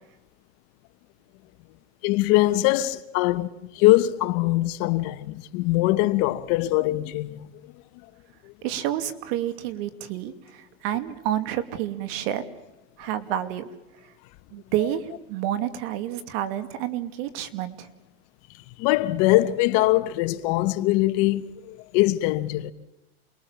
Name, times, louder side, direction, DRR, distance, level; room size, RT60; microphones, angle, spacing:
voice 1, 2.0-3.5 3.7-7.5 8.4-8.5 18.8-22.7, left 17 dB, 60° left, 1.4 m, -22 dB
voice 2, 8.6-12.4 13.0-13.7 14.5-17.9, right 12 dB, 70° right, 2.5 m, -29 dB
28.5 x 22.0 x 7.3 m
supercardioid pair, 135°, 31 cm